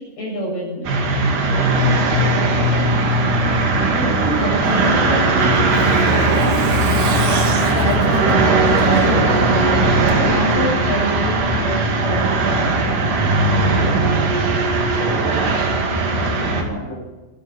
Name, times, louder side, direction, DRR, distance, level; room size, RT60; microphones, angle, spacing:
voice 1, 0.2-1.0 3.7-5.4 6.9-7.3 7.7-9.8 10.2-12.7, right 1 dB, 90° left, -2 dB, 9.8 m, -26 dB
sound 1, 0.8-16.6, right 2 dB, 85° right, 4.2 m, -18 dB
voice 2, 2.0-2.4 4.2-5.7 13.5-14.2 14.9-15.4 15.7-17.2, equal, 60° left, -2 dB, 6.4 m, -32 dB
Truck, 4.7-9.4 9.7-9.8 10.1-10.2, right 3 dB, 55° right, 3.6 m, -29 dB
26.5 x 10.0 x 9.9 m, 1.2 s
omnidirectional pair, 3.7 m